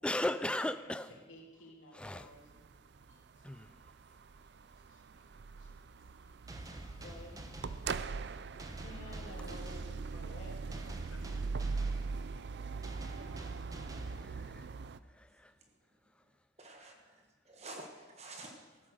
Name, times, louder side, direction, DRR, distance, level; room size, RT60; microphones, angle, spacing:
voice 1, 0.0-1.1 1.9-2.3 3.4-3.8 14.2-14.7 15.1-15.5, left 1 dB, 5° left, 12 dB, 0.3 m, -37 dB
voice 2, 0.7-2.7 3.1-3.7 4.4-5.3 5.6-5.7 6.1-6.4 7.0-7.4 8.1-11.3 18.4-18.6, left 1 dB, 75° left, 0 dB, 3.0 m, -54 dB
sound 1, 2.0-15.0, right 4 dB, 55° right, 0.4 m, -41 dB
sound 2, 6.5-14.9, right 1 dB, 20° right, 0.9 m, -49 dB
voice 3, 16.6-18.8, right 2 dB, 35° right, 2 dB, 1.5 m, -50 dB
14.5 x 8.8 x 6.5 m, 1.2 s
head